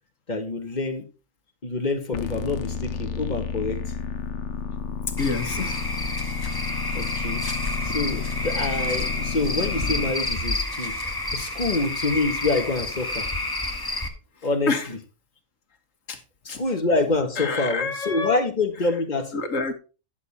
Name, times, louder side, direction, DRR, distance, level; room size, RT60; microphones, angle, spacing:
voice 1, 0.3-1.1 1.6-3.8 6.9-13.3 14.4-15.0 16.4-19.3, left 3 dB, 35° left, 1.6 m, -26 dB
sound 1, 2.1-10.1, left 6 dB, 70° left, 1.1 m, -31 dB
voice 2, 5.2-5.8 14.7-14.9 16.1-16.2 16.5-16.6 17.4-18.4 19.3-19.7, left 4 dB, 85° left, 1.8 m, -27 dB
Cricket / Frog, 5.2-14.1, left 2 dB, 20° left, 1.2 m, -29 dB
10.5 x 7.0 x 4.2 m
omnidirectional pair, 1.3 m